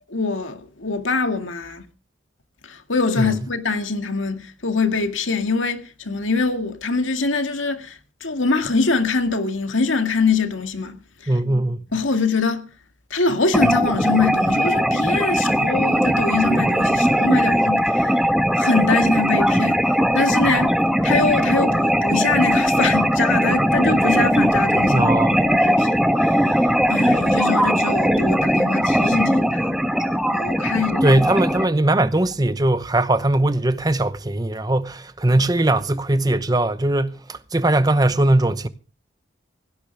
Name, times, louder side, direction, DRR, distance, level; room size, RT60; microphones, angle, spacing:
voice 1, 0.1-1.8 2.6-11.3 11.9-12.6 13.1-18.2 18.6-20.7 21.0-29.7 30.3-31.2, left 4 dB, 85° left, 2.0 m, -23 dB
voice 2, 11.3-11.8 24.9-25.3 31.0-38.7, right 1 dB, 20° right, 0.8 m, -20 dB
sound 1, 13.5-31.6, equal, 5° right, 1.3 m, -19 dB
18.5 x 16.5 x 3.5 m
head